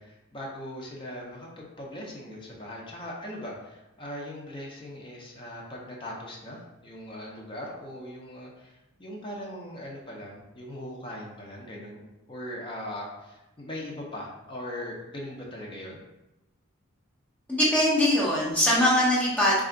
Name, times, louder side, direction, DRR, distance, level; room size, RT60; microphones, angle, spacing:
voice 1, 0.0-12.0 12.3-16.0, left 1 dB, 25° left, -3 dB, 0.6 m, -40 dB
voice 2, 17.5-19.6, left 1 dB, 5° left, -7 dB, 1.0 m, -22 dB
3.2 x 2.4 x 3.7 m, 0.96 s
head